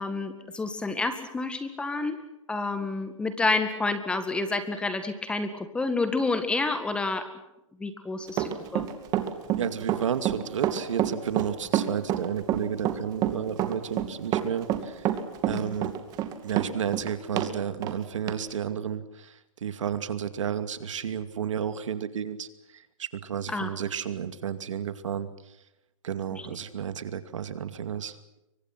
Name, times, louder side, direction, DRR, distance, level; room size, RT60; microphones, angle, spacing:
voice 1, 0.0-2.2 2.5-7.3 7.8-8.9 15.5-15.8 23.5-23.7 26.3-26.5, left 3 dB, 5° left, 10 dB, 1.8 m, -29 dB
Run, 8.3-17.5 17.8-17.9 18.3-18.4, right 11 dB, 20° right, 2.4 m, -27 dB
voice 2, 9.6-15.0 15.5-15.9 16.4-22.5 22.7-25.3 26.0-28.2, right 8 dB, 70° right, 11 dB, 2.4 m, -32 dB
28.0 x 24.0 x 6.0 m, 0.90 s
hypercardioid pair, 155°, 17 cm